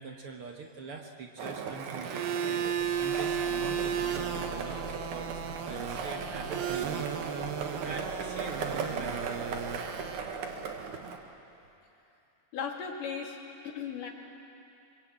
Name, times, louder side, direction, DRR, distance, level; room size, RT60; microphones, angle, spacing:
voice 1, 0.0-7.2 7.8-9.6, right 4 dB, 55° right, 2 dB, 1.8 m, -43 dB
Skateboard, 1.4-11.2, right 5 dB, 70° right, 3.0 m, -38 dB
sound 1, 2.0-10.2, right 8 dB, 85° right, 3.0 m, -34 dB
sound 2, 2.5-11.7, left 5 dB, 60° left, 0.7 m, -49 dB
voice 2, 12.5-13.4 13.6-14.1, left 6 dB, 80° left, 1 dB, 4.0 m, -36 dB
24.5 x 24.5 x 8.8 m, 2.7 s
omnidirectional pair, 3.7 m